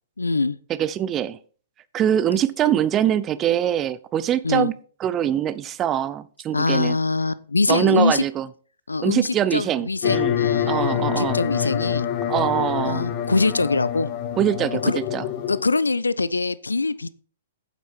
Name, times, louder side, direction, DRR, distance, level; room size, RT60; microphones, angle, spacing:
voice 1, 0.2-0.6 4.4-4.7 6.5-8.3 8.9-12.1 12.8-14.1 14.8-15.0 15.5-17.1, left 3 dB, 75° left, 0.5 m, -23 dB
voice 2, 0.7-1.4 1.9-4.7 5.0-7.0 7.7-8.5 9.0-10.3 10.7-11.4 12.3-13.1 14.4-15.2, right 10 dB, 25° right, 0.5 m, -23 dB
sound 1, 10.0-15.6, left 9 dB, 35° left, 1.1 m, -26 dB
8.6 x 8.3 x 4.5 m
figure-of-eight pair, 110°, 0 cm